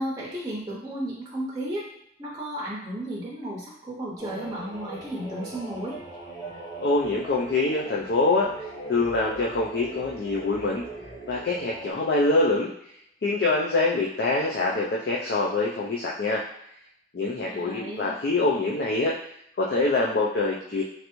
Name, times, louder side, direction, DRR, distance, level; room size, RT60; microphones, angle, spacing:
voice 1, 0.0-1.8 2.2-6.0 17.4-18.1, right 1 dB, 20° right, -4 dB, 0.5 m, -33 dB
sound 1, 4.2-11.9, right 2 dB, 15° left, 1.0 m, -40 dB
voice 2, 6.8-8.5 8.9-10.8 11.3-12.7 13.2-16.4 17.1-19.1 19.6-20.8, left 2 dB, 60° left, -3 dB, 0.4 m, -24 dB
3.2 x 2.5 x 3.0 m, 0.74 s
head